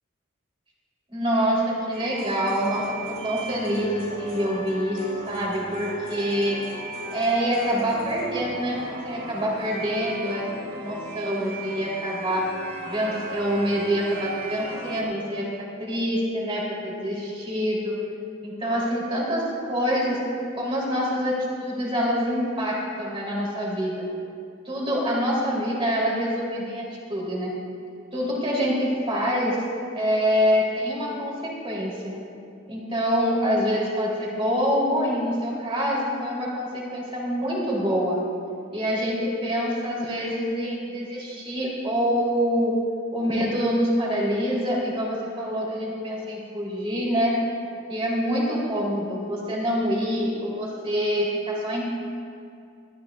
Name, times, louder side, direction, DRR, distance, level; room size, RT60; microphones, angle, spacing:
voice 1, 1.1-6.6 7.1-12.4 12.9-18.0 18.4-20.2 20.6-24.0 24.6-26.8 27.1-27.5 28.1-29.6 29.9-32.1 32.7-38.2 38.7-42.8 43.1-47.3 47.9-51.9, equal, 25° right, -4 dB, 3.3 m, -26 dB
sound 1, 1.9-15.0, right 2 dB, 45° right, 2.1 m, -37 dB
22.0 x 14.0 x 2.4 m, 2.4 s
head